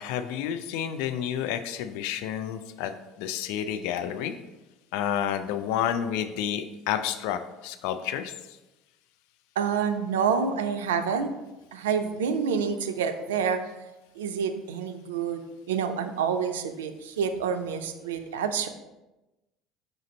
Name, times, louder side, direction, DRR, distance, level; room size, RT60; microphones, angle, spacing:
voice 1, 0.0-2.9 3.2-4.3 4.9-8.3, left 9 dB, 65° left, 8 dB, 0.3 m, -30 dB
voice 2, 9.6-11.3 11.7-13.6 14.2-18.7, right 6 dB, 75° right, 8 dB, 0.4 m, -28 dB
5.0 x 2.5 x 4.1 m, 1.0 s
figure-of-eight pair, 65°, 0 cm